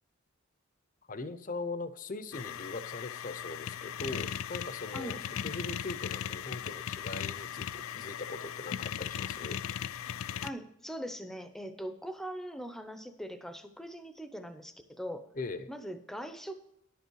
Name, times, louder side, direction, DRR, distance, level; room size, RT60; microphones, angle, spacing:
voice 1, 1.1-9.6 15.3-15.7, left 3 dB, 40° left, 12 dB, 0.7 m, -40 dB
sound 1, 2.3-10.5, left 9 dB, 80° left, 0.4 m, -38 dB
voice 2, 10.4-15.3 15.7-16.5, equal, ahead, 9 dB, 0.7 m, -41 dB
11.0 x 8.3 x 4.6 m, 0.81 s
head